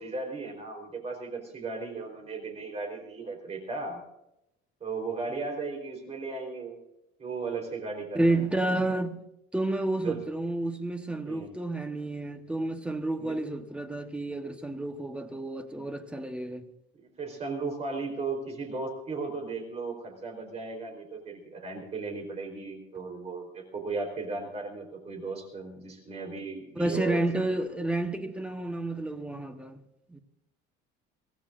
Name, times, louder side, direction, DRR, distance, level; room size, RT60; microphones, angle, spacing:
voice 1, 0.0-4.0 4.8-6.8 7.2-8.4 10.0-10.3 11.3-11.5 13.2-13.4 16.9-27.6, right 4 dB, 30° right, 3.9 m, -36 dB
voice 2, 8.1-9.2 9.5-16.7 26.7-29.8 30.1-30.2, right 2 dB, 5° right, 1.1 m, -30 dB
24.0 x 17.0 x 2.6 m
cardioid pair, 175°, 21 cm